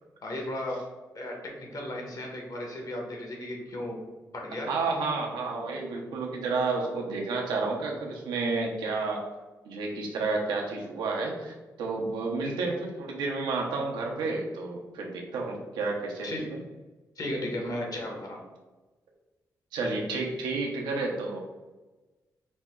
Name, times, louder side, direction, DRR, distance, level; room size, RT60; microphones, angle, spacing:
voice 1, 0.2-0.8 1.1-4.0 4.3-4.7 16.2-16.5 17.2-18.4, left 1 dB, 55° left, 0 dB, 1.3 m, -35 dB
voice 2, 4.7-9.2 9.6-16.6 19.7-21.4, right 3 dB, 85° right, 0 dB, 0.8 m, -31 dB
5.1 x 2.1 x 3.6 m, 1.2 s
supercardioid pair, 45°, 8 cm